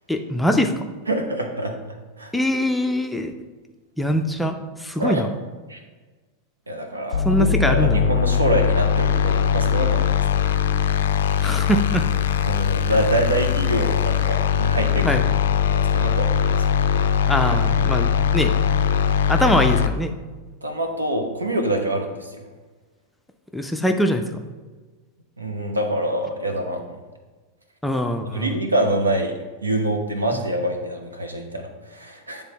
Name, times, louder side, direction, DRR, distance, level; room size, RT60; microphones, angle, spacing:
voice 1, 0.1-0.7 2.3-3.3 4.0-5.3 7.2-8.0 11.4-12.1 15.0-15.2 17.3-18.5 19.3-20.1 23.5-24.2 27.8-28.5, equal, 5° left, 5 dB, 0.5 m, -22 dB
voice 2, 1.1-2.3 5.0-5.2 5.7-5.8 6.7-10.6 12.5-15.2 15.7-16.6 16.9-17.0 20.6-22.4 25.4-27.0 28.2-32.4, right 1 dB, 80° right, 4 dB, 0.8 m, -25 dB
sound 1, 7.1-19.9, left 8 dB, 60° left, 0.4 m, -21 dB
9.6 x 3.5 x 4.1 m, 1.3 s
figure-of-eight pair, 90°, 0 cm